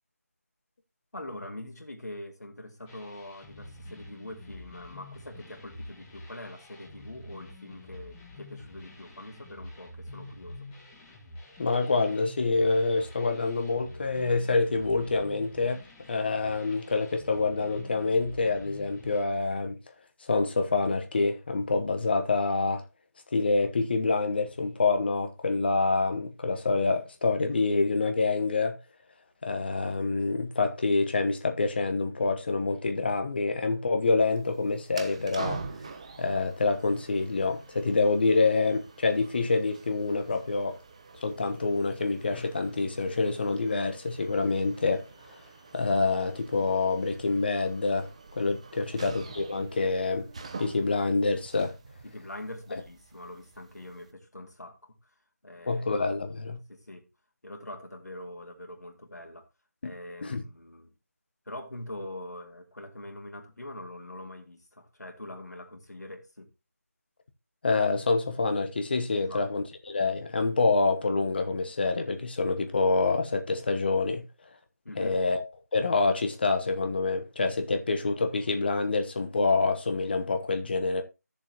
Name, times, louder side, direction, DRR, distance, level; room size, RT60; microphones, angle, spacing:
voice 1, 1.1-10.7 48.8-49.0 52.0-55.1 55.4-55.8 56.7-57.1 57.4-59.5 59.8-60.9 61.5-66.5 69.1-69.5 74.8-75.2, left 1 dB, 75° left, 2.3 m, -43 dB
sound 1, 2.9-19.2, left 2 dB, 10° left, 1.3 m, -47 dB
voice 2, 11.6-15.8 16.1-19.8 20.2-22.8 23.3-28.8 29.4-35.6 36.2-40.8 41.2-45.0 45.7-48.1 48.4-50.3 50.6-51.7 55.7-56.6 59.8-59.9 60.2-60.4 67.6-74.2 75.0-75.4 75.7-81.0, left 3 dB, 35° left, 1.1 m, -26 dB
sound 2, 34.3-54.1, right 4 dB, 20° right, 0.6 m, -46 dB
13.0 x 6.9 x 2.9 m
figure-of-eight pair, 165°, 9 cm